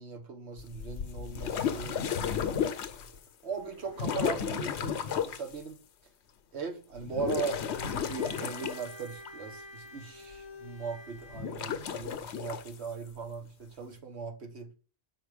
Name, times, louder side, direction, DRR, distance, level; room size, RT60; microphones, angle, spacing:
voice 1, 0.0-2.8 3.1-5.8 6.5-14.7, right 5 dB, 75° right, 1.5 m, -39 dB
sound 1, 0.6-3.2 3.9-5.5 7.0-9.3 11.3-12.7, left 8 dB, 80° left, 1.0 m, -33 dB
Bowed string instrument, 7.1-11.6, left 2 dB, 25° right, 1.5 m, -47 dB
5.6 x 4.5 x 4.9 m
omnidirectional pair, 1.1 m